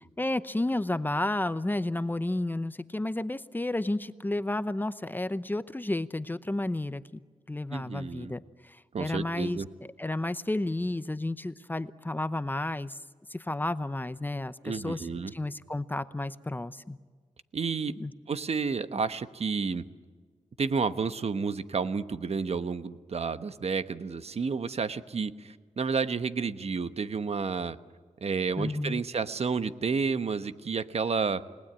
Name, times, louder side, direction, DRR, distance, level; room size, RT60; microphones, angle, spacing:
voice 1, 0.2-7.2 7.5-9.6 10.0-13.0 13.3-17.0 18.0-18.1 28.6-29.0, left 2 dB, 15° left, 13 dB, 0.8 m, -32 dB
voice 2, 7.7-8.3 8.9-9.7 14.6-15.3 17.5-17.9 18.3-19.8 20.6-27.8 28.2-31.4, right 5 dB, 55° right, 11 dB, 1.1 m, -30 dB
29.5 x 19.0 x 8.9 m, 1.5 s
cardioid pair, 80°, 13 cm